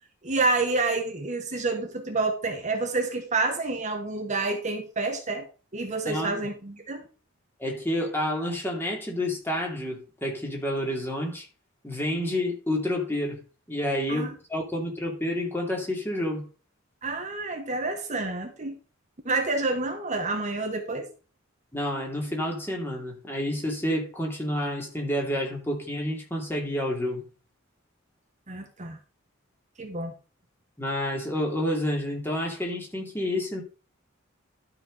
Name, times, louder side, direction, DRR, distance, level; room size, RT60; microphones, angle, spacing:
voice 1, 0.2-5.5 5.7-7.1 14.1-14.3 17.0-18.8 19.2-21.1 28.5-29.0 29.8-30.1, right 3 dB, 35° right, 1.2 m, -28 dB
voice 2, 6.1-6.5 7.6-11.4 11.8-13.4 13.7-16.5 21.7-27.2 30.8-33.6, left 1 dB, 10° left, 2.6 m, -29 dB
12.5 x 4.6 x 5.2 m
head